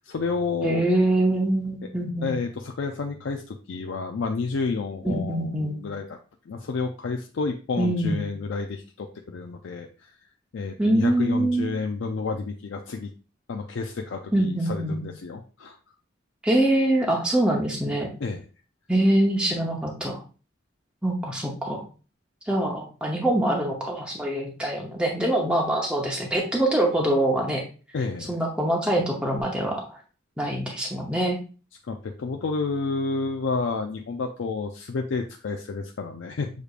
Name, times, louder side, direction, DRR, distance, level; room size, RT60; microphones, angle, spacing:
voice 1, 0.0-0.9 2.2-6.2 6.5-10.1 10.5-13.1 13.5-15.8 18.2-18.4 27.9-28.4 31.9-36.5, left 4 dB, 65° left, 4 dB, 0.4 m, -30 dB
voice 2, 0.6-2.4 5.0-5.8 7.8-8.3 10.8-11.7 14.3-15.1 16.4-18.1 18.9-20.2 21.0-21.8 22.5-27.6 28.3-30.0 30.4-31.4, right 1 dB, 5° right, -1 dB, 0.7 m, -24 dB
6.5 x 3.3 x 2.4 m, 0.36 s
head